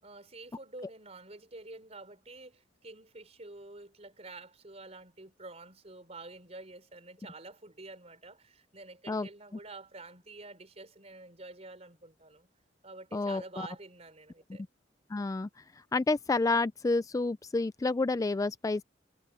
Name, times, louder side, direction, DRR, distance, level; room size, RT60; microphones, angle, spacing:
voice 1, 0.0-12.5 12.8-14.6, right 2 dB, 40° right, 4.3 m, -48 dB
voice 2, 13.1-13.7 15.1-15.6 15.9-18.8, left 3 dB, 20° left, 0.3 m, -29 dB
head